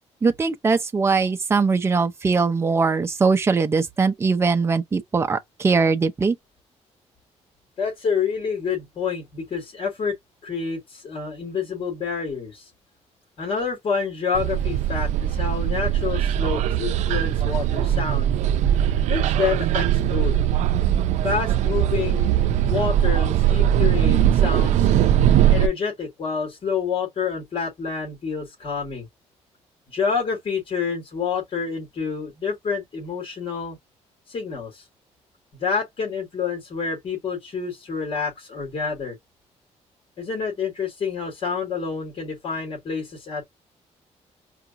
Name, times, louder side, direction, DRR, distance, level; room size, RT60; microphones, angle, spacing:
voice 1, 0.2-6.4, right 4 dB, 20° right, 0.6 m, -21 dB
voice 2, 7.8-10.1 10.4-12.7 13.4-18.3 19.1-20.4 21.2-22.4 22.7-24.9 25.5-29.1 29.9-33.8 34.3-34.8 35.5-39.1 40.2-43.4, left 5 dB, 50° left, 3.1 m, -28 dB
sound 1, 14.3-25.7, right 11 dB, 85° right, 0.4 m, -20 dB
4.9 x 2.7 x 2.6 m
cardioid pair, 135°, 12 cm